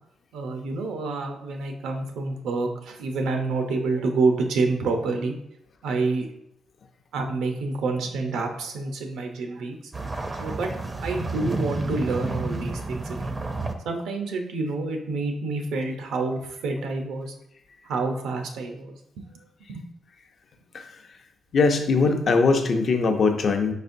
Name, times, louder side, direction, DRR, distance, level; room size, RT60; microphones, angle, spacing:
voice 1, 0.3-5.3 5.8-6.3 7.1-9.8 10.4-13.4 13.8-17.3 17.8-19.2 19.7-19.8, right 3 dB, 90° right, 4 dB, 0.7 m, -28 dB
sound 1, 9.9-13.7, right 2 dB, 20° right, 0.5 m, -30 dB
voice 2, 21.5-23.7, left 4 dB, 50° left, 5 dB, 0.6 m, -21 dB
4.9 x 4.1 x 2.6 m, 0.78 s
cardioid pair, 105°, 0 cm